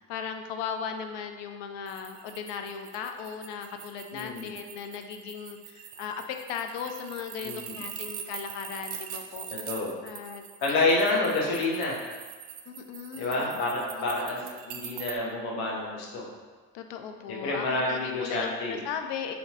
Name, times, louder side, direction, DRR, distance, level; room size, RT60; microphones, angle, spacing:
voice 1, 0.0-9.5 10.0-10.4 10.7-11.3 12.7-13.5 16.7-19.3, left 7 dB, 70° left, 6 dB, 0.5 m, -37 dB
sound 1, 1.9-15.2, right 10 dB, 65° right, 0.5 m, -43 dB
voice 2, 4.1-4.5 7.4-7.8 9.7-10.0 10.6-12.0 13.1-16.3 17.3-18.8, left 2 dB, 90° left, -3 dB, 0.9 m, -28 dB
4.2 x 2.8 x 2.8 m, 1.4 s
hypercardioid pair, 60°, 44 cm